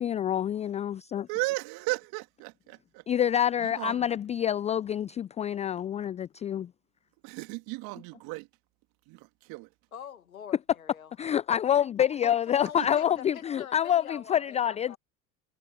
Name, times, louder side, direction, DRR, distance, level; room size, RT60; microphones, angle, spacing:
voice 1, 0.0-1.3 3.1-6.7 11.2-15.0, left 10 dB, 20° left, 0.3 m, -27 dB
voice 2, 1.3-3.0 3.6-4.0 7.2-8.5 9.1-9.7 12.8-12.9, right 25 dB, 60° right, 2.2 m, -35 dB
voice 3, 9.9-11.1 12.2-15.0, left 9 dB, 90° left, 1.8 m, -44 dB
hypercardioid pair, 70°, 41 cm